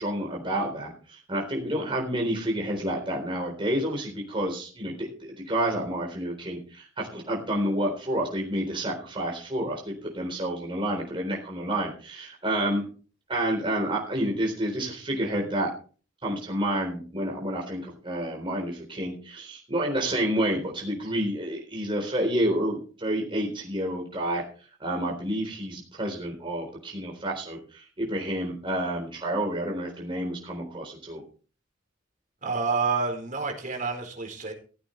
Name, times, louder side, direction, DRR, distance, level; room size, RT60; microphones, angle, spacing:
voice 1, 0.0-12.8 13.3-15.7 16.2-24.4 24.8-31.2, right 1 dB, 25° right, -1 dB, 3.9 m, -29 dB
voice 2, 32.4-34.5, right 4 dB, 45° right, 3 dB, 4.4 m, -28 dB
16.0 x 15.0 x 3.3 m, 0.38 s
head